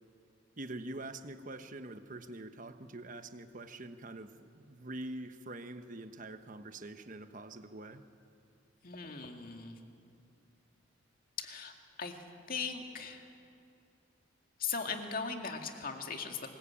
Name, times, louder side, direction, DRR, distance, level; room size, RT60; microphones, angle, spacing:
voice 1, 0.6-8.0, right 2 dB, 40° right, 9 dB, 1.1 m, -45 dB
voice 2, 8.8-9.8 11.4-11.7 12.0-12.2 12.5-13.2 14.6-16.5, left 5 dB, 45° left, 4 dB, 2.1 m, -38 dB
25.0 x 21.0 x 8.7 m, 2.5 s
head